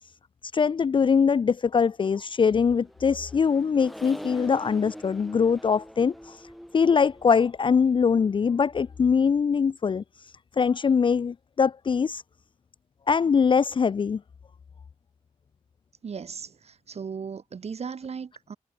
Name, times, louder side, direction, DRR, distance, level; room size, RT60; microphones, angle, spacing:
voice 1, 0.5-6.4 6.7-10.0 10.6-12.2 13.1-14.2, left 6 dB, 40° left, 0.5 m, -22 dB
Accelerating revving vroom, 2.4-9.0, equal, ahead, 6.0 m, -45 dB
voice 2, 16.0-18.6, right 6 dB, 55° right, 6.1 m, -37 dB
wide cardioid pair, 110°, 13 cm